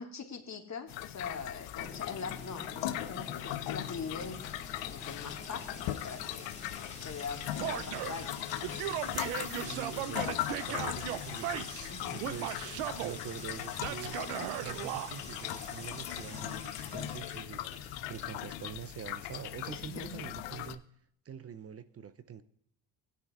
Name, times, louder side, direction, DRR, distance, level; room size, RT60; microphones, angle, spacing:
voice 1, 0.0-4.4 4.9-6.5 7.0-8.4 11.9-12.2 19.7-20.3, left 5 dB, 40° left, 4 dB, 1.7 m, -42 dB
sound 1, 0.9-20.8, left 14 dB, 75° left, 0.6 m, -39 dB
Sink (filling or washing) / Trickle dribble / Fill (with liquid), 1.8-19.2, left 2 dB, 15° left, 2.5 m, -47 dB
Male speech man speaking / Yell, 7.6-8.2 8.6-11.9 12.2-13.2 13.8-15.1, right 13 dB, 90° right, 0.6 m, -37 dB
voice 2, 9.6-11.6 12.1-12.7 13.0-14.2 14.6-20.8 21.2-22.4, right 8 dB, 35° right, 13 dB, 0.5 m, -45 dB
16.0 x 10.5 x 2.4 m, 0.70 s
supercardioid pair, 60°, 44 cm